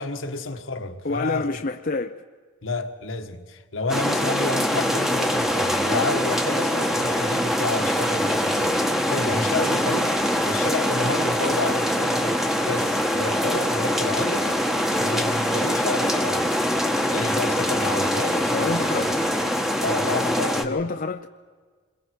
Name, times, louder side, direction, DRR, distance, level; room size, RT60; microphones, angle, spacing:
voice 1, 0.0-1.6 2.6-10.2 10.4-14.6 14.9-16.6 17.1-19.3 19.8-20.9, left 3 dB, 70° left, 1.5 m, -30 dB
voice 2, 1.0-2.2 18.5-19.2 20.6-21.3, left 3 dB, 40° left, 0.6 m, -28 dB
sound 1, 3.9-20.6, equal, ahead, 1.1 m, -23 dB
27.5 x 22.5 x 4.6 m
head